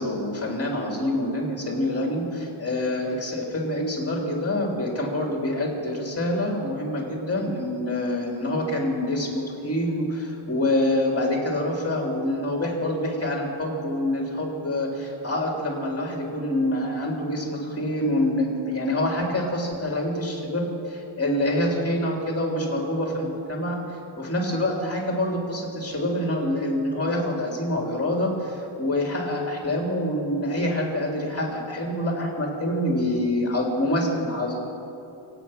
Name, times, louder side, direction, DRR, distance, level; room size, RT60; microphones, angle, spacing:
voice 1, 0.0-34.8, left 1 dB, 30° left, 0 dB, 3.5 m, -26 dB
25.0 x 9.2 x 6.1 m, 2.9 s
wide cardioid pair, 105°, 49 cm